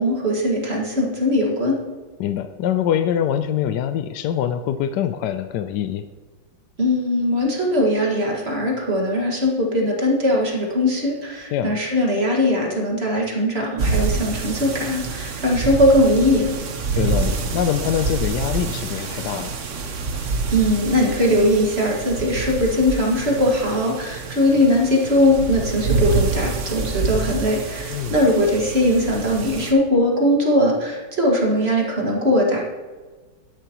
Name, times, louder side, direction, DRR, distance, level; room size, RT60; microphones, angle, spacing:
voice 1, 0.0-1.8 6.8-16.5 20.5-32.6, left 1 dB, 35° right, -2 dB, 2.0 m, -20 dB
voice 2, 2.2-6.0 11.5-11.8 17.0-19.5 27.9-28.3, left 9 dB, 75° left, 9 dB, 1.0 m, -24 dB
sound 1, 13.8-29.7, right 4 dB, 50° right, 1.1 m, -27 dB
11.5 x 10.5 x 3.0 m, 1.3 s
omnidirectional pair, 2.1 m